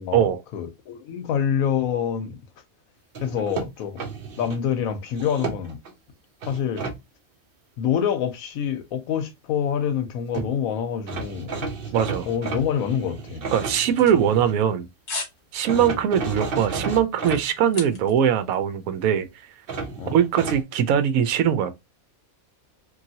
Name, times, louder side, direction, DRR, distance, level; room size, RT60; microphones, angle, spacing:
voice 1, 0.0-2.4 3.2-4.0 4.4-5.8 6.5-6.9 7.8-11.7 12.3-13.4 15.7-15.9 20.0-20.1, left 8 dB, 80° left, 1.0 m, -26 dB
sound 1, 3.1-4.6 5.1-5.9 6.4-7.0 10.1-10.2 10.3-10.5 11.1-14.5 15.6-17.4 19.7-20.6, right 4 dB, 50° right, 0.7 m, -32 dB
voice 2, 11.9-12.3 13.5-14.9 15.5-19.3 20.1-21.8, right 9 dB, 80° right, 1.0 m, -21 dB
sound 2, 14.0-14.7 15.1-15.4 15.8-16.0 16.5-18.3 18.5-18.6, left 3 dB, 40° left, 1.0 m, -35 dB
3.1 x 2.6 x 2.7 m
omnidirectional pair, 1.5 m